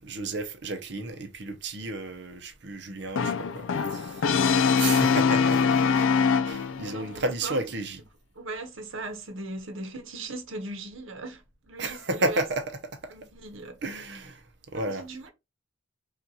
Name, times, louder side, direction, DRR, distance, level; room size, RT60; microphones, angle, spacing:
voice 1, 0.0-3.6 3.9-4.1 4.5-5.6 5.9-6.1 6.5-8.0 11.8-12.8 13.8-14.4 14.7-15.0, right 2 dB, 60° right, 0.7 m, -32 dB
Brass instrument, 3.2-7.0, left 5 dB, 80° left, 0.4 m, -23 dB
voice 2, 6.8-7.7 8.3-12.4 13.1-13.8 14.7-15.3, right 2 dB, 80° right, 0.9 m, -38 dB
5.4 x 2.5 x 2.8 m
head